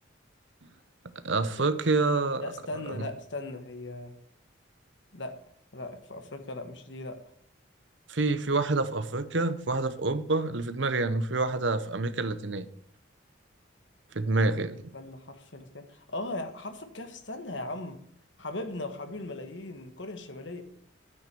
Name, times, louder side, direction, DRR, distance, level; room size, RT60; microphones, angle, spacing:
voice 1, 1.2-2.4 2.9-3.0 8.1-12.7 14.1-14.8, right 3 dB, 70° right, 12 dB, 1.0 m, -27 dB
voice 2, 2.4-4.1 5.1-5.4 5.7-7.2 8.2-8.3 14.9-18.0 18.4-20.6, left 2 dB, 65° left, 7 dB, 1.7 m, -38 dB
10.5 x 9.7 x 6.9 m, 0.64 s
head